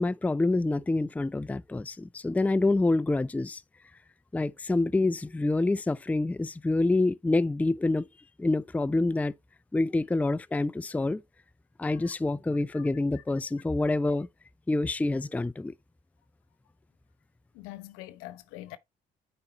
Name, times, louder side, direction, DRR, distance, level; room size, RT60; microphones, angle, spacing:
voice 1, 0.0-3.6 4.3-8.1 8.4-9.3 9.7-11.2 11.8-14.3 14.7-15.7, left 2 dB, 5° left, 0.4 m, -27 dB
voice 2, 17.5-18.8, left 16 dB, 80° left, 1.0 m, -44 dB
9.5 x 4.3 x 4.0 m
hypercardioid pair, 55°, 21 cm